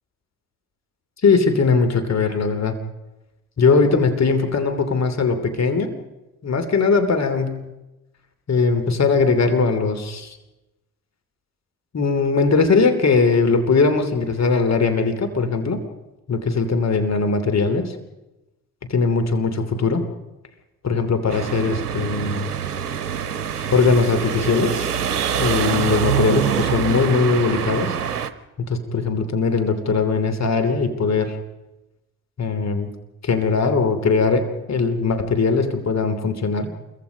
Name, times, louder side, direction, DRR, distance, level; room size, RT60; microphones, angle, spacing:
voice 1, 1.2-2.7 3.6-5.9 6.4-7.7 8.5-10.4 11.9-15.8 16.3-17.9 18.9-20.1 20.8-22.5 23.7-24.8 25.4-28.0 28.6-31.4 32.4-32.9 33.2-36.7, left 4 dB, 35° left, 7 dB, 3.0 m, -20 dB
sound 1, 21.3-28.3, right 8 dB, 80° right, 0.9 m, -25 dB
27.5 x 23.5 x 5.3 m, 1.0 s
figure-of-eight pair, 50°, 46 cm